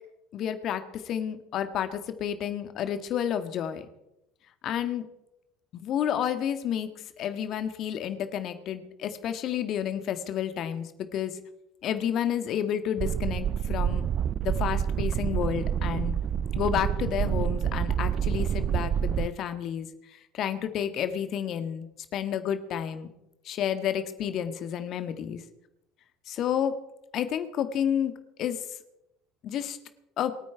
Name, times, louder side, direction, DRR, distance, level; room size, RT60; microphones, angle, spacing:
voice 1, 0.3-3.8 4.6-5.1 5.7-6.9 7.2-11.4 11.8-14.1 14.4-16.2 16.5-21.9 22.1-23.1 23.4-25.4 26.3-26.7 27.1-28.1 28.4-28.7 29.4-29.8 30.2-30.3, left 9 dB, 50° left, 10 dB, 1.8 m, -30 dB
sound 1, 13.0-19.3, right 9 dB, 45° right, 0.5 m, -28 dB
28.0 x 9.4 x 4.8 m, 0.88 s
figure-of-eight pair, 65°, 0 cm